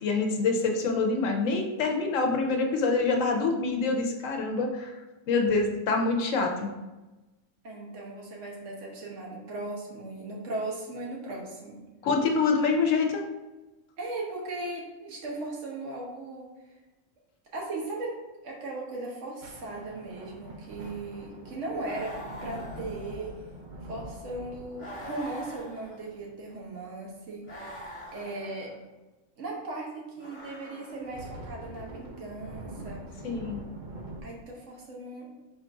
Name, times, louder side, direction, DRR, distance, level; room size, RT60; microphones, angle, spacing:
voice 1, 0.0-4.9 5.3-6.7 12.0-13.2 33.2-33.6, left 4 dB, 85° left, 2 dB, 1.1 m, -26 dB
voice 2, 7.6-11.8 14.0-16.7 17.5-18.2 18.4-22.2 22.4-23.4 23.9-27.7 28.1-28.7 29.4-33.3 34.2-35.3, right 2 dB, 75° right, -2 dB, 1.3 m, -37 dB
sound 1, 19.4-27.1 30.9-34.2, right 1 dB, 50° right, 0.6 m, -44 dB
sound 2, 21.8-23.6 24.8-26.3 27.4-28.8 30.1-31.3, equal, 25° left, 0.9 m, -44 dB
4.2 x 2.5 x 4.6 m, 1.1 s
omnidirectional pair, 1.3 m